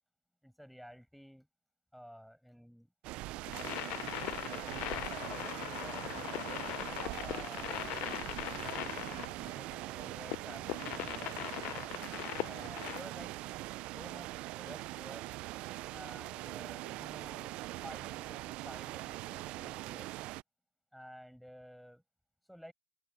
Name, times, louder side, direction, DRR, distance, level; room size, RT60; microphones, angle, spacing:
voice 1, 0.4-1.5 1.9-2.9 3.5-6.5 7.2-8.0 8.7-9.0 9.4-11.9 12.5-15.3 15.9-20.1 20.9-22.0 22.5-22.7, equal, ahead, 5.3 m, -53 dB
sound 1, 3.0-20.4, right 18 dB, 45° right, 0.4 m, -42 dB
sound 2, 3.4-13.0, left 19 dB, 50° left, 0.4 m, -40 dB
supercardioid pair, 125°, 3 cm